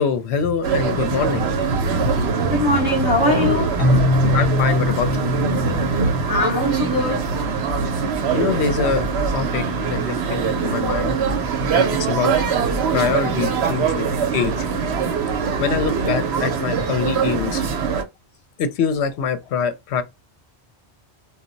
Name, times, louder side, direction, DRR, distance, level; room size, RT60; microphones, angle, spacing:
voice 1, 0.0-1.5 1.9-2.1 2.5-2.6 4.3-5.3 8.3-9.6 9.9-11.2 11.7-12.4 12.9-14.1 14.3-14.7 15.6-17.6 18.6-20.0, left 6 dB, 75° left, 0.8 m, -24 dB
sound 1, 0.6-18.0, right 5 dB, 75° right, 0.9 m, -22 dB
voice 2, 2.5-3.8 6.3-7.3, left 2 dB, 25° right, 0.7 m, -21 dB
Keyboard (musical), 3.8-7.5, left 3 dB, 40° left, 0.5 m, -24 dB
2.2 x 2.0 x 3.7 m
omnidirectional pair, 1.1 m